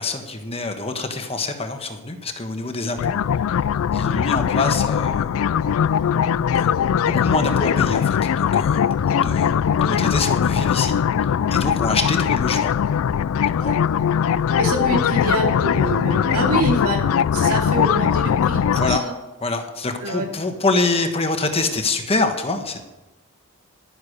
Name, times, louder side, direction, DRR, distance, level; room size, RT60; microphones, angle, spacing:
voice 1, 0.0-3.1 3.5-3.6 3.9-5.5 6.5-6.7 7.0-9.5 9.8-11.0 11.2-12.7 13.6-13.7 18.8-19.0 19.4-22.8, left 3 dB, 25° left, 6 dB, 1.2 m, -25 dB
sound 1, 3.0-19.0, left 8 dB, 65° left, 0.3 m, -20 dB
voice 2, 14.5-19.1 20.0-20.3, right 1 dB, 80° right, 1 dB, 2.6 m, -26 dB
11.5 x 9.8 x 6.5 m, 1.0 s
head